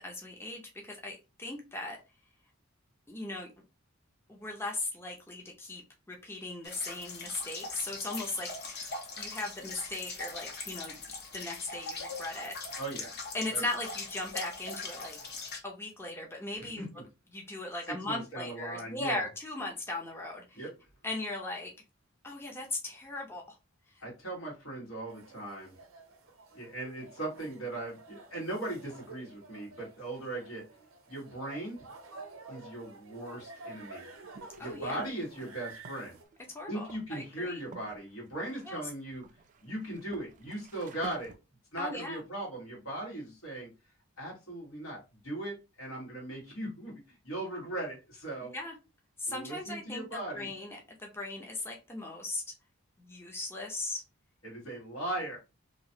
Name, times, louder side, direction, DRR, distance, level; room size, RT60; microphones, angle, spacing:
voice 1, 0.0-2.0 3.1-3.5 4.3-5.8 6.1-8.9 9.2-10.9 11.3-12.5 13.3-15.2 15.6-16.8 17.3-20.6 21.0-21.7 22.2-23.4 23.9-24.0 34.6-35.1 36.5-37.6 38.7-38.8 41.8-42.2 48.4-48.7 49.2-52.4 53.0-54.0, left 2 dB, 10° left, 0 dB, 0.5 m, -38 dB
sound 1, 6.6-15.6, left 3 dB, 50° left, 0.7 m, -41 dB
voice 2, 12.8-13.2 13.5-13.6 16.6-17.0 17.9-19.2 20.5-20.7 24.0-25.7 26.5-30.6 31.1-31.8 32.5-34.1 34.6-36.2 36.7-39.3 39.6-41.3 41.7-43.7 44.2-48.5 49.3-50.5 54.4-55.4, right 1 dB, 80° left, -3 dB, 1.7 m, -39 dB
sound 2, 25.1-36.2, right 3 dB, 70° right, 0.6 m, -50 dB
sound 3, 34.1-41.4, right 4 dB, 40° right, 0.3 m, -51 dB
3.0 x 2.4 x 2.7 m, 0.28 s
head